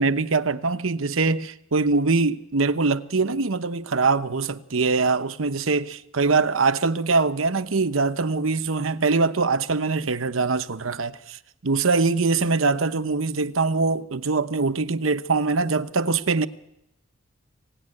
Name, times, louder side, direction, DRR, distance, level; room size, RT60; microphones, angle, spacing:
voice 1, 0.0-16.5, right 4 dB, 85° right, 1.0 m, -23 dB
25.5 x 17.5 x 9.9 m
head